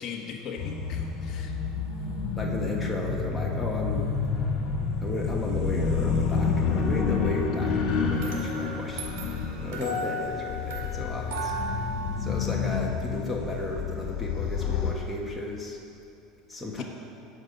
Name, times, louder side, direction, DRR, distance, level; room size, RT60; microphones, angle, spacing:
voice 1, 0.0-1.6 16.8-16.9, left 6 dB, 40° left, 0 dB, 1.2 m, -38 dB
sound 1, 0.6-14.9, left 5 dB, 60° left, 2.0 m, -29 dB
voice 2, 2.4-4.1 5.0-9.1 9.6-11.5 12.2-15.8 16.5-16.8, left 1 dB, 10° left, -3 dB, 1.3 m, -34 dB
sound 2, 8.2-13.2, equal, 85° right, 2.2 m, -36 dB
16.5 x 5.6 x 5.3 m, 2.8 s
supercardioid pair, 125°, 0 cm